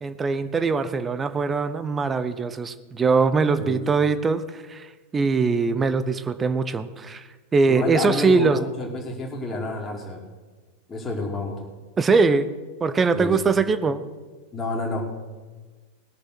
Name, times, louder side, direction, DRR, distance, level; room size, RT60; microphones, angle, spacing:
voice 1, 0.0-7.2 7.5-8.6 12.0-12.5 12.8-14.0, right 4 dB, 15° right, 12 dB, 0.7 m, -22 dB
voice 2, 7.7-10.2 10.9-11.6 13.1-13.6 14.5-15.1, left 3 dB, 15° left, -2 dB, 2.4 m, -29 dB
19.0 x 6.6 x 6.2 m, 1.4 s
figure-of-eight pair, 90°, 0 cm